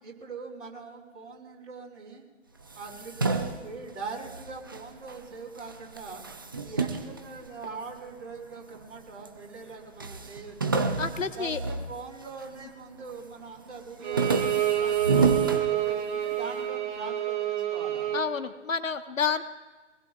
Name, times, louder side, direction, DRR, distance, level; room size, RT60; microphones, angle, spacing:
voice 1, 0.0-2.2 2.7-6.2 6.6-10.9 11.3-18.1, right 4 dB, 70° right, -2 dB, 5.0 m, -42 dB
sound 1, 2.6-5.2 5.6-8.1 8.7-9.4 9.6-9.7 10.0-12.6 13.0-13.4 13.8-16.3, right 4 dB, 20° right, 0.4 m, -30 dB
voice 2, 11.0-11.6 18.1-19.4, left 6 dB, 90° left, 9 dB, 1.3 m, -29 dB
Bowed string instrument, 14.0-18.3, right 12 dB, 40° right, 2.6 m, -28 dB
25.5 x 20.5 x 2.4 m, 1.3 s
hypercardioid pair, 145°, 38 cm